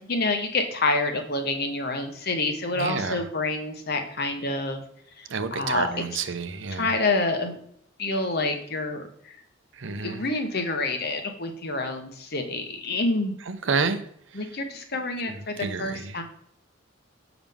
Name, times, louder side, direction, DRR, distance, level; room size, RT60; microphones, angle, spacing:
voice 1, 0.1-4.8 5.2-6.2 6.7-7.6 8.0-9.4 10.0-13.4 14.3-16.2, left 2 dB, 50° left, 6 dB, 1.1 m, -28 dB
voice 2, 2.8-3.2 5.3-6.9 9.8-10.2 13.5-14.0 15.6-16.1, right 5 dB, 65° right, 10 dB, 0.7 m, -29 dB
7.0 x 6.0 x 3.5 m, 0.67 s
head